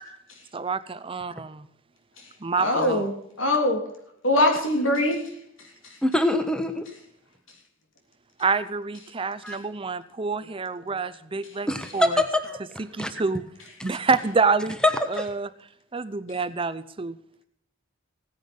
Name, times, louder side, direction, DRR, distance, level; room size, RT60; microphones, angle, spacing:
voice 1, 0.5-1.7 2.4-3.0 8.4-11.7 11.9-12.2 12.8-13.4 13.8-14.8 15.1-15.5 15.9-17.2, right 4 dB, 25° right, 14 dB, 0.6 m, -27 dB
voice 2, 2.6-3.8 4.2-5.2 10.9-11.0, left 1 dB, 75° left, 4 dB, 3.4 m, -22 dB
voice 3, 6.0-6.9 9.4-9.6 11.7-13.1 13.8-13.9 14.8-15.3, left 1 dB, 5° left, 8 dB, 1.2 m, -24 dB
16.5 x 10.0 x 5.4 m, 0.73 s
head